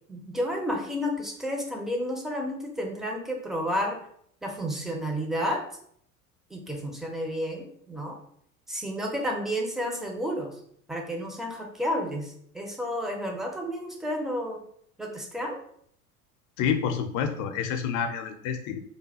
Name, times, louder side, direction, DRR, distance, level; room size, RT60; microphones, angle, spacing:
voice 1, 0.1-4.0 4.4-5.6 6.5-8.2 8.7-10.5 10.9-14.6 15.0-15.6, equal, ahead, 2 dB, 0.7 m, -31 dB
voice 2, 16.6-18.8, left 7 dB, 45° left, 6 dB, 0.7 m, -28 dB
3.3 x 2.2 x 4.1 m, 0.65 s
hypercardioid pair, 80°, 42 cm